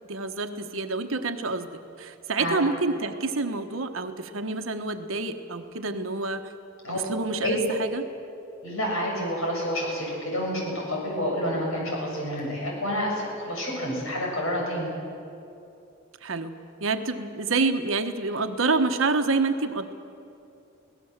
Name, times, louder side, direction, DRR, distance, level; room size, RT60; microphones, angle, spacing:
voice 1, 0.1-1.7 2.0-6.5 6.9-8.1 16.2-19.9, right 3 dB, 80° right, 7 dB, 1.2 m, -28 dB
voice 2, 8.6-10.6 10.9-14.9, equal, 80° left, -2 dB, 7.3 m, -29 dB
25.0 x 17.5 x 7.4 m, 2.7 s
head